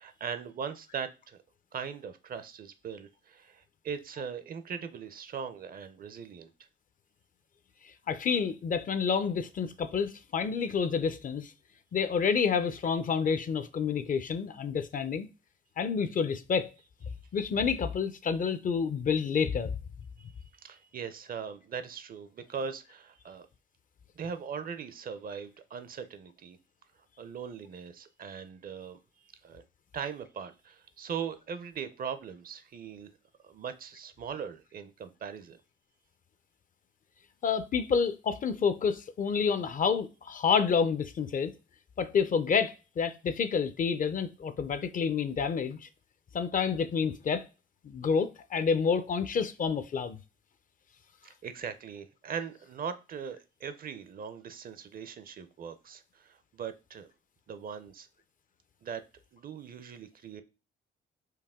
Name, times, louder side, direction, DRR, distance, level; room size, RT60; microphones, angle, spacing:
voice 1, 0.0-1.4 1.7-6.5 20.2-23.5 24.2-26.6 27.2-29.0 29.4-29.6 29.9-33.1 33.4-35.6 51.2-57.1 57.5-58.1 58.8-59.0 59.3-60.4, right 7 dB, 45° right, 0.5 m, -40 dB
voice 2, 8.1-11.5 11.9-15.3 15.8-16.7 17.3-19.7 37.4-41.5 42.0-45.9 46.3-47.5 47.8-50.2, left 6 dB, 45° left, 0.5 m, -29 dB
4.7 x 2.7 x 3.5 m
cardioid pair, 90°, 20 cm